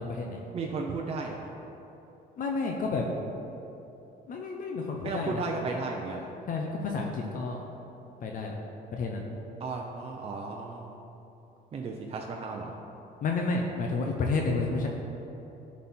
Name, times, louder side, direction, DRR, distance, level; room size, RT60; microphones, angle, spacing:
voice 1, 0.0-0.4 2.4-3.0 4.3-5.4 6.5-7.6 8.2-8.6 8.9-9.3 13.2-14.9, left 3 dB, 55° left, 1 dB, 0.8 m, -30 dB
voice 2, 0.5-1.5 5.0-6.3 9.6-11.1 11.7-12.8, right 3 dB, 35° right, 1 dB, 0.6 m, -35 dB
11.0 x 4.2 x 4.3 m, 2.9 s
cardioid pair, 110°, 17 cm